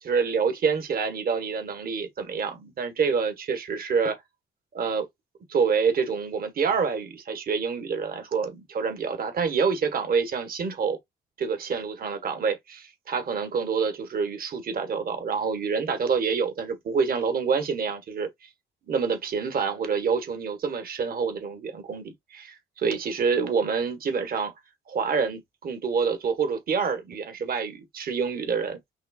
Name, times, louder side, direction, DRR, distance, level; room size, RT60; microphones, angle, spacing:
voice 1, 0.0-4.1 4.7-5.1 5.5-11.0 11.4-18.5 18.9-24.5 24.9-28.8, right 5 dB, 50° right, 1.5 m, -27 dB
5.7 x 3.3 x 2.4 m
cardioid pair, 110°, 20 cm